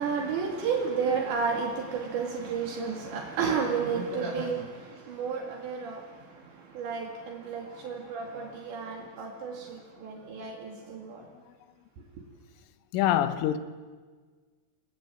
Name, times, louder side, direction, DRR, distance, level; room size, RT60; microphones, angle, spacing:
voice 1, 0.0-11.3 12.0-12.1, right 5 dB, 70° right, 4.5 m, -32 dB
voice 2, 12.9-13.6, left 11 dB, 85° left, 3.7 m, -28 dB
29.5 x 21.5 x 9.0 m
omnidirectional pair, 5.6 m